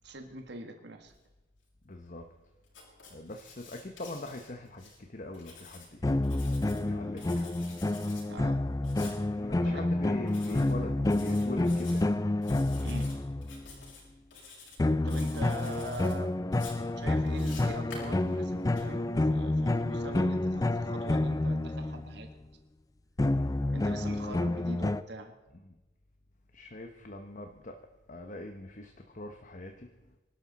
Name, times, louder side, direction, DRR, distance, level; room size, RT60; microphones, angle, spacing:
voice 1, 0.0-1.1 7.1-7.2 8.3-8.6 9.6-9.9 12.8-13.1 15.0-16.5 16.9-22.3 23.7-25.3, right 1 dB, 60° right, 5 dB, 1.6 m, -43 dB
voice 2, 1.8-2.3 3.1-6.3 6.7-7.5 9.3-12.2 24.3-24.6 25.6-25.8 26.5-27.8 28.1-30.2, left 2 dB, 40° left, 4 dB, 1.0 m, -43 dB
Writing, 2.7-5.0 5.3-6.8 7.2-8.2 8.8-9.2 10.3-10.7 11.0-12.0 12.4-13.1 13.4-14.0 14.3-14.8 15.1-16.1 16.5-18.8, left 4 dB, 85° left, 6.2 m, -50 dB
sound 1, 6.0-13.7 14.8-22.3 23.2-25.0, left 2 dB, 20° left, 0.4 m, -29 dB
25.0 x 12.0 x 4.1 m, 1.1 s
head